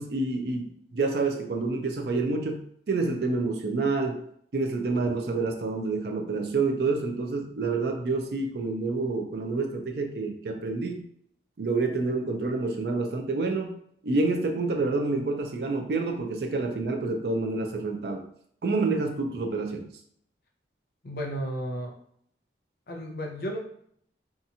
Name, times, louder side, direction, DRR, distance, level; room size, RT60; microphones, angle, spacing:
voice 1, 0.0-4.3 4.5-11.0 11.6-13.8 14.0-18.3 18.6-19.9, right 3 dB, 60° right, 3 dB, 0.4 m, -28 dB
voice 2, 21.0-21.9 22.9-23.6, equal, 55° left, 1 dB, 0.5 m, -33 dB
2.8 x 2.3 x 2.7 m, 0.65 s
head